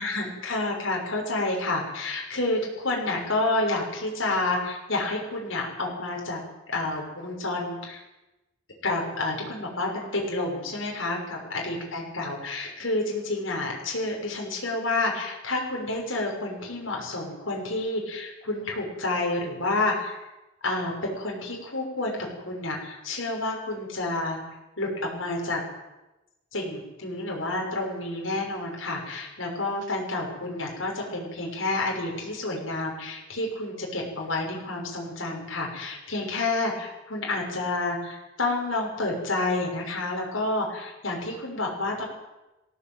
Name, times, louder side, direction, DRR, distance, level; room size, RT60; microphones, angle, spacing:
voice 1, 0.0-6.4 6.7-8.0 8.8-20.2 20.6-24.4 24.8-25.6 26.5-42.1, left 2 dB, 70° left, -1 dB, 6.5 m, -29 dB
19.0 x 16.5 x 9.2 m, 1.0 s
head